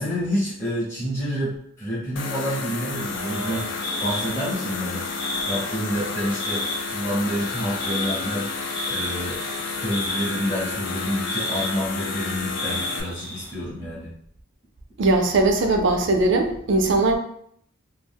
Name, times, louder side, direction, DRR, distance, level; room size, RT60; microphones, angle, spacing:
voice 1, 0.0-5.0 5.5-14.1 16.9-17.0, equal, 10° left, -10 dB, 0.8 m, -28 dB
sound 1, 2.2-13.0, left 4 dB, 65° left, 0.4 m, -31 dB
sound 2, 2.9-13.5, left 1 dB, 90° left, 0.9 m, -34 dB
voice 2, 15.0-17.2, right 2 dB, 65° right, 4 dB, 0.5 m, -20 dB
2.3 x 2.2 x 3.3 m, 0.66 s
head